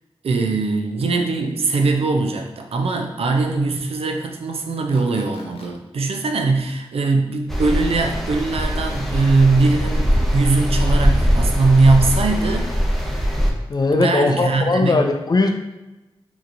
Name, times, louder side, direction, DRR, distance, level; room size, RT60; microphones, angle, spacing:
voice 1, 0.2-12.7 13.9-15.0, right 3 dB, 75° right, 4 dB, 0.5 m, -20 dB
sound 1, 4.9-5.7 8.9-9.7, left 3 dB, 70° left, 0.8 m, -44 dB
sound 2, 7.5-13.5, equal, ahead, 0.7 m, -21 dB
voice 2, 13.7-15.5, left 3 dB, 45° left, 5 dB, 0.5 m, -19 dB
3.9 x 2.9 x 2.6 m, 1.0 s
cardioid pair, 45°, 10 cm